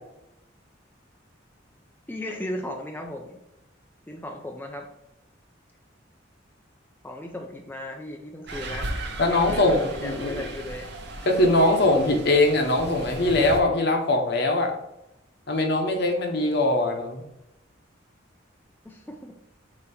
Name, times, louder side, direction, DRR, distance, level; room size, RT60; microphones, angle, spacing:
voice 1, 2.1-3.4 4.1-4.9 7.0-8.9 9.2-10.9 18.8-19.3, left 1 dB, 10° left, 1 dB, 0.5 m, -36 dB
sound 1, 8.5-13.6, right 2 dB, 60° right, 0.9 m, -36 dB
voice 2, 9.2-10.5 11.3-14.7 15.5-17.2, left 2 dB, 60° left, 2 dB, 1.1 m, -22 dB
7.5 x 3.0 x 4.3 m, 0.86 s
head